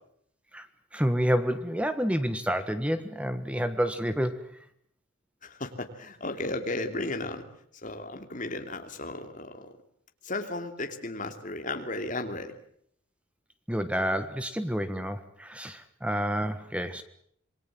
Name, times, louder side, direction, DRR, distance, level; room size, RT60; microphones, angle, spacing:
voice 1, 0.9-4.5 13.7-17.0, equal, 5° right, 10 dB, 1.4 m, -29 dB
voice 2, 5.4-7.4 7.8-9.7 10.2-12.5, left 2 dB, 35° left, 5 dB, 3.0 m, -34 dB
27.5 x 21.5 x 7.6 m, 0.68 s
head